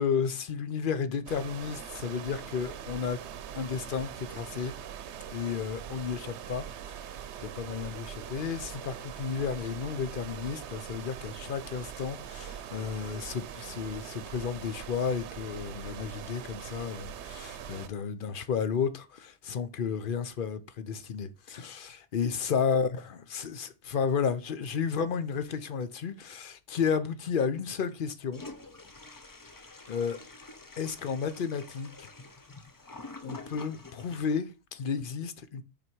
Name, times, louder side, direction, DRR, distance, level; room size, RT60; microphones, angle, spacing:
voice 1, 0.0-3.2 3.5-4.7 5.3-28.4 29.9-30.2 30.8-32.1 33.2-35.6, left 6 dB, 55° left, 0.9 m, -32 dB
sound 1, 1.3-17.9, right 9 dB, 80° right, 0.9 m, -42 dB
Toilet flush, 28.3-34.4, left 3 dB, 25° left, 0.6 m, -47 dB
6.2 x 4.3 x 4.6 m
omnidirectional pair, 1.1 m